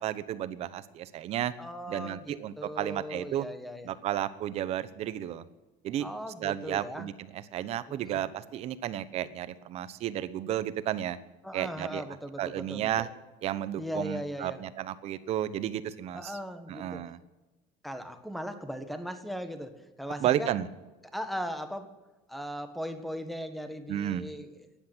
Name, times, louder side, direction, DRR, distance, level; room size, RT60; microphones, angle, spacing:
voice 1, 0.0-1.5 1.9-3.5 3.8-5.5 5.8-6.1 6.4-11.2 11.5-12.0 12.4-13.1 13.4-16.3 16.7-17.2 20.2-20.7 23.9-24.2, right 11 dB, 45° right, 14 dB, 1.0 m, -32 dB
voice 2, 1.6-3.9 6.0-7.1 7.9-8.2 11.4-13.1 13.8-14.6 16.1-17.1 17.8-20.6 21.1-21.9 22.3-24.6, equal, ahead, 8 dB, 1.5 m, -38 dB
15.5 x 10.5 x 8.9 m, 1.1 s
cardioid pair, 155°, 15 cm